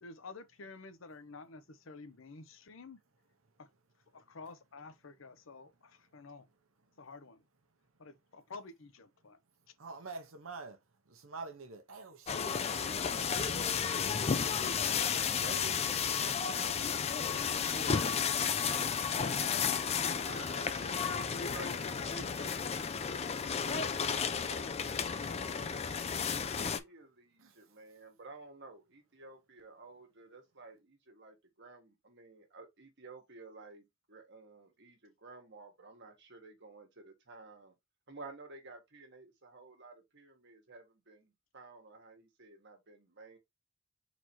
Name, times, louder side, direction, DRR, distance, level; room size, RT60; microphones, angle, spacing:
voice 1, 0.0-3.0 3.6-3.7 4.1-6.4 7.0-7.4 8.0-9.4, left 3 dB, 70° left, 0.7 m, -50 dB
voice 2, 5.9-6.6 6.8-7.0 8.1-8.2 9.6-12.6 13.1-13.7 15.5-15.7 27.4-27.8, right 4 dB, 85° right, 1.0 m, -49 dB
sound 1, 12.3-26.8, left 6 dB, 30° left, 0.4 m, -33 dB
voice 3, 15.3-22.6 23.6-24.0 24.4-37.7 38.1-43.4, right 3 dB, 60° right, 1.6 m, -53 dB
Wind instrument woodwind instrument, 20.2-24.7, equal, 20° right, 1.4 m, -56 dB
4.2 x 2.8 x 4.5 m
head